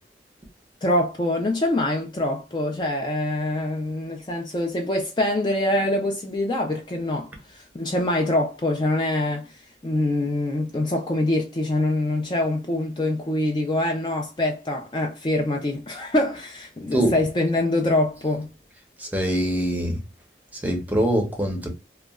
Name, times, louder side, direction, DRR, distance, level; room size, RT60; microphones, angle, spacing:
voice 1, 0.8-9.5 9.8-18.5, left 1 dB, 25° left, 0.4 m, -24 dB
voice 2, 19.0-20.0 20.6-21.7, equal, 10° right, 0.6 m, -23 dB
2.9 x 2.2 x 2.3 m
head